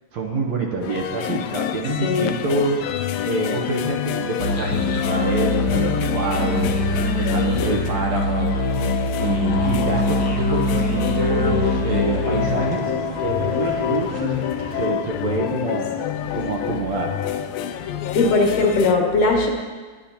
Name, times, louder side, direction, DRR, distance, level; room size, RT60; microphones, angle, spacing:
voice 1, 0.1-2.9 3.2-6.7 7.2-8.5 9.2-12.9 13.2-14.3 14.7-15.9 16.3-17.1, right 3 dB, 65° right, 0 dB, 2.0 m, -26 dB
sound 1, 0.8-18.9, left 10 dB, 90° left, 2.3 m, -27 dB
sound 2, 4.4-12.6, left 1 dB, 50° left, 1.3 m, -23 dB
sound 3, 9.8-14.9, right 4 dB, 85° right, 3.1 m, -35 dB
voice 2, 18.1-19.5, left 3 dB, 65° left, 1 dB, 2.8 m, -18 dB
19.0 x 10.5 x 2.9 m, 1.4 s
omnidirectional pair, 4.0 m